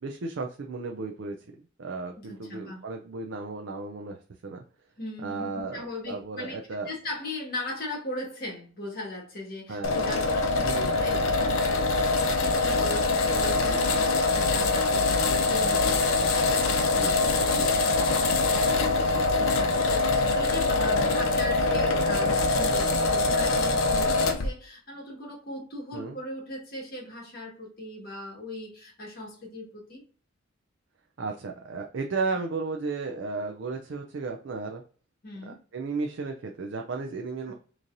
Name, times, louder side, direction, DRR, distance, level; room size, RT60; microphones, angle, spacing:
voice 1, 0.0-1.5 1.8-4.6 5.2-6.9 9.7-10.0 10.6-10.9 13.6-14.0 16.9-17.7 25.9-26.2 31.2-34.8 35.5-37.5, right 3 dB, 65° right, 2 dB, 0.5 m, -34 dB
voice 2, 2.2-2.8 5.0-5.5 5.7-6.6 6.8-16.8 18.3-30.0 35.2-35.6, left 2 dB, 50° left, -2 dB, 1.6 m, -39 dB
sound 1, 9.8-24.5, left 3 dB, 85° left, 0.6 m, -24 dB
3.9 x 3.0 x 2.6 m, 0.40 s
head